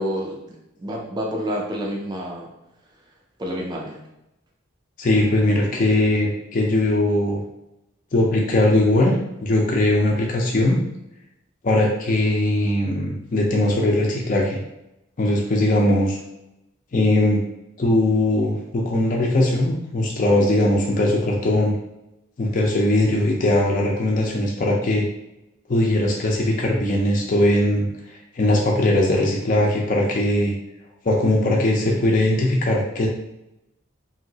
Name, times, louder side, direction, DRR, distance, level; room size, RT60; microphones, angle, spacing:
voice 1, 0.0-2.5 3.4-4.0, equal, 20° right, -2 dB, 0.4 m, -29 dB
voice 2, 5.0-7.4 8.1-9.1 9.4-10.8 11.6-14.6 15.2-16.2 16.9-17.4 17.8-21.7 22.4-25.0 25.7-30.5 31.0-33.1, left 1 dB, 40° left, -2 dB, 0.5 m, -20 dB
3.0 x 2.7 x 2.7 m, 0.89 s
head